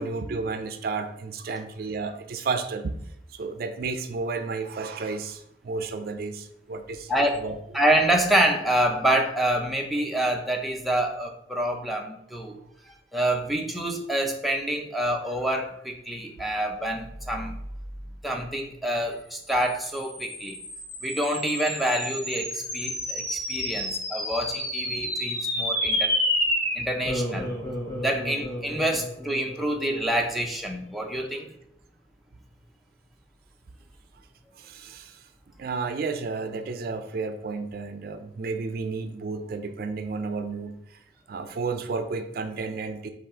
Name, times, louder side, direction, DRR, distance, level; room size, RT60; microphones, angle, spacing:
voice 1, 0.0-2.9 3.3-7.1 7.4-7.6 34.5-35.3 35.6-41.0 41.3-43.1, right 4 dB, 55° right, 8 dB, 0.4 m, -32 dB
voice 2, 7.1-7.4 7.7-12.6 13.1-17.6 18.2-20.6 21.0-26.1 26.8-27.5 28.0-31.5, right 1 dB, ahead, 0 dB, 0.5 m, -27 dB
sound 1, 19.6-30.2, left 1 dB, 20° left, 1.6 m, -30 dB
5.7 x 2.5 x 3.6 m, 0.75 s
head